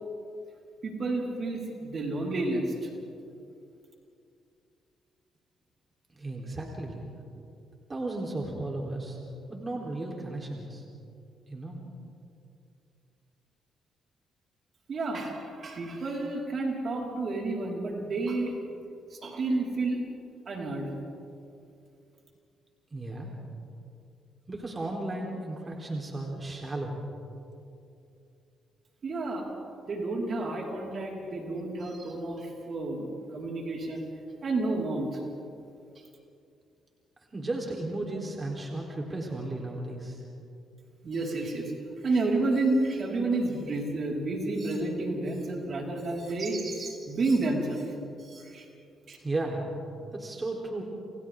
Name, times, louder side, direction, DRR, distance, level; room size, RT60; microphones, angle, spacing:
voice 1, 0.8-2.9 14.9-18.6 19.1-20.0 20.4-20.9 29.0-29.5 29.9-34.1 34.4-35.2 41.0-41.7 42.0-47.9 48.2-48.7 49.1-49.2, right 2 dB, 55° right, -2 dB, 5.1 m, -30 dB
voice 2, 6.1-7.0 7.3-7.4 7.9-9.2 9.5-10.8 11.5-11.8 22.9-23.3 24.5-27.0 37.3-40.2 49.2-49.7 50.1-50.8, right 2 dB, 30° right, -1 dB, 4.0 m, -34 dB
29.5 x 28.0 x 3.8 m, 2.6 s
supercardioid pair, 60°, 0 cm